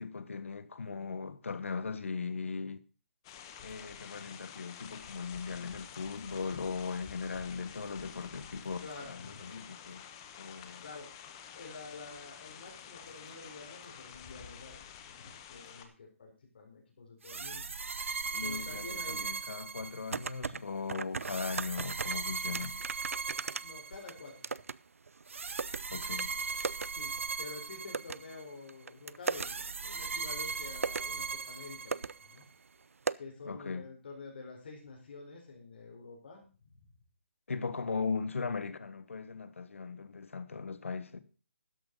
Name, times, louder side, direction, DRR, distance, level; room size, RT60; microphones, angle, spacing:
voice 1, 0.0-2.8 3.6-10.0 10.4-10.8 18.3-22.8 25.9-26.3 33.4-33.8 37.5-41.2, left 5 dB, 70° left, 1.5 m, -38 dB
sound 1, 3.2-15.8, left 8 dB, 20° left, 1.1 m, -49 dB
voice 2, 8.8-9.5 10.8-11.1 11.5-17.7 18.4-19.3 23.6-24.5 26.3-26.7 26.9-32.5 33.2-36.8, left 3 dB, 45° left, 4.6 m, -49 dB
sound 2, 17.2-20.4 21.2-24.3 25.3-28.4 29.2-32.3, right 5 dB, 65° right, 1.3 m, -39 dB
sound 3, 19.8-20.6 20.9-22.2 22.5-24.8 25.1-25.8 26.2-26.3 26.6-26.9 27.2-27.3 27.9-28.2 28.7-29.5 30.3-30.4 30.8-31.1 31.6-31.7 31.9-32.1 32.4-32.5 33.1-33.2, right 4 dB, 90° right, 0.6 m, -36 dB
13.0 x 10.5 x 4.0 m
hypercardioid pair, 170°, 7 cm